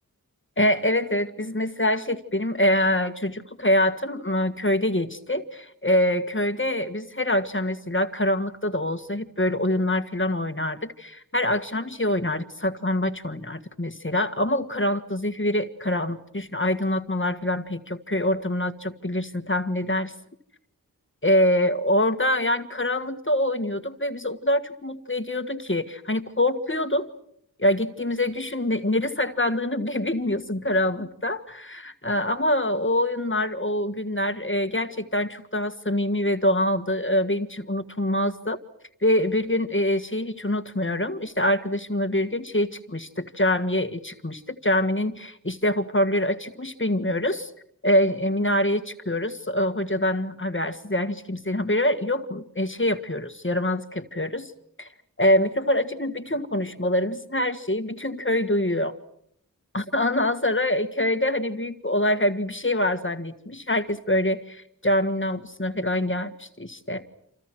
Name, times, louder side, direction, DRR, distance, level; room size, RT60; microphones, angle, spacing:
voice 1, 0.6-20.1 21.2-27.1 27.6-38.6 39.0-47.5 47.8-54.5 54.8-54.9 55.2-59.0 59.7-67.0, left 1 dB, 35° left, 10 dB, 1.8 m, -25 dB
28.5 x 27.5 x 6.2 m, 0.70 s
wide cardioid pair, 45°, 36 cm